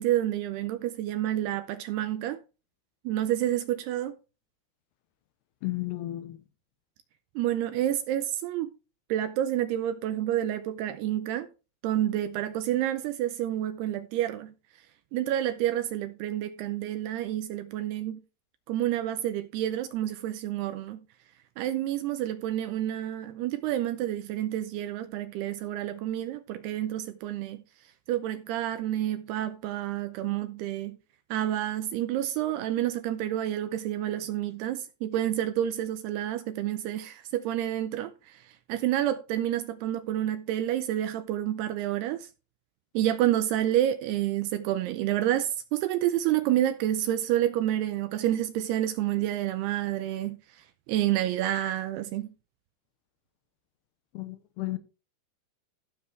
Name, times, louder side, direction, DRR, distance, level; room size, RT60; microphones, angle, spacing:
voice 1, 0.0-2.4 3.0-4.2 7.4-8.7 9.1-11.5 11.8-14.5 15.1-18.2 18.7-21.0 21.6-27.6 28.1-31.0 31.3-42.3 42.9-52.3, right 12 dB, 80° right, 2.5 m, -29 dB
voice 2, 5.6-6.4 54.1-54.8, left 17 dB, 80° left, 2.6 m, -33 dB
15.0 x 7.1 x 3.3 m
omnidirectional pair, 5.2 m